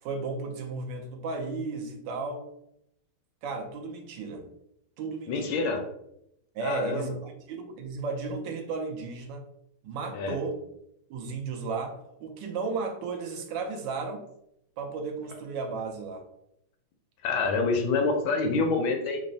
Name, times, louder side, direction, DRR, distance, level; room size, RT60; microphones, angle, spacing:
voice 1, 0.0-2.4 3.4-4.5 5.0-5.7 6.5-9.4 9.8-10.6 11.1-14.2 14.8-16.3, right 4 dB, 70° right, 4 dB, 1.2 m, -34 dB
voice 2, 5.3-5.8 6.6-7.1 10.1-10.4 17.2-19.2, left 4 dB, 75° left, 3 dB, 1.3 m, -27 dB
3.9 x 2.1 x 3.8 m, 0.77 s
omnidirectional pair, 2.4 m